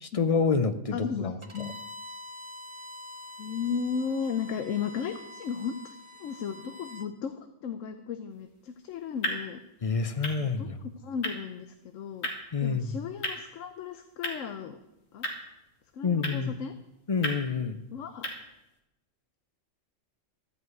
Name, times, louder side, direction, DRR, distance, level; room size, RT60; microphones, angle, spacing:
voice 1, 0.0-1.7 9.8-10.8 12.5-13.0 16.0-16.5 17.1-17.8, left 5 dB, 40° left, 10 dB, 0.6 m, -28 dB
voice 2, 0.9-1.8 3.4-7.3 7.6-9.6 10.4-12.3 12.6-14.8 15.1-15.3 15.9-16.7 17.9-18.3, left 6 dB, 80° left, 8 dB, 1.1 m, -35 dB
Bowed string instrument, 1.4-7.1, left 1 dB, 30° right, 0.8 m, -45 dB
sound 1, 8.3-18.8, left 1 dB, 55° left, 2.1 m, -40 dB
13.5 x 5.6 x 9.2 m, 0.92 s
omnidirectional pair, 1.3 m